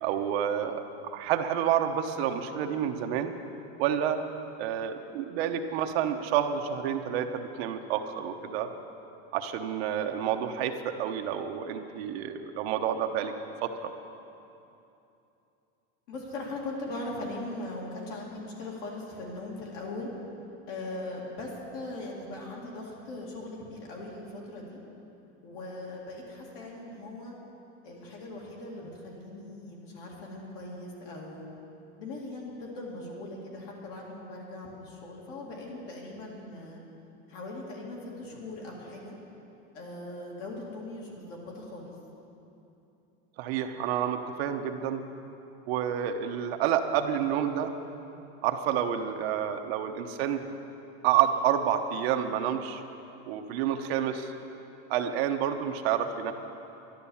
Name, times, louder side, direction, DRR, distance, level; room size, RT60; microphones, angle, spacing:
voice 1, 0.0-3.3 3.8-4.2 4.6-8.7 9.3-13.3 13.6-13.9 43.4-45.0 45.7-47.7 48.4-50.4 51.0-52.8 53.3-54.3 54.9-56.3, right 9 dB, 65° right, 5 dB, 1.0 m, -29 dB
voice 2, 16.1-20.1 20.7-24.8 25.4-27.4 27.8-31.5 32.0-36.8 37.3-39.2 39.7-41.9, left 2 dB, 55° left, -3 dB, 2.4 m, -40 dB
12.0 x 11.5 x 7.1 m, 2.8 s
supercardioid pair, 170°, 34 cm